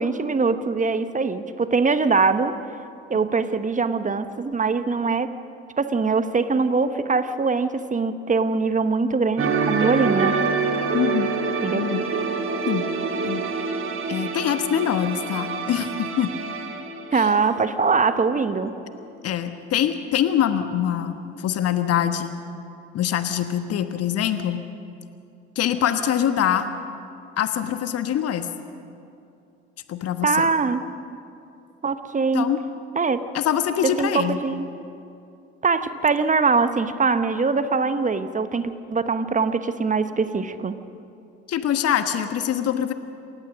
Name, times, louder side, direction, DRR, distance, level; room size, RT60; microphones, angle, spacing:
voice 1, 0.0-2.5 3.1-5.3 5.8-10.5 11.6-11.9 17.1-18.7 30.2-30.8 31.8-32.5 32.9-33.2 34.0-34.7 35.6-40.8, right 4 dB, 25° right, 11 dB, 1.2 m, -22 dB
sound 1, 9.4-18.1 18.3-18.6, right 5 dB, 40° right, 2.4 m, -26 dB
voice 2, 10.9-11.3 11.7-12.0 12.7-12.9 13.2-13.4 14.1-16.3 17.1-17.3 19.2-22.4 22.9-24.6 25.5-26.7 27.4-28.5 29.9-30.5 32.3-32.6 33.3-34.4 41.5-42.9, left 10 dB, 50° left, 9 dB, 1.3 m, -24 dB
28.0 x 15.5 x 6.3 m, 2.6 s
figure-of-eight pair, 55°, 32 cm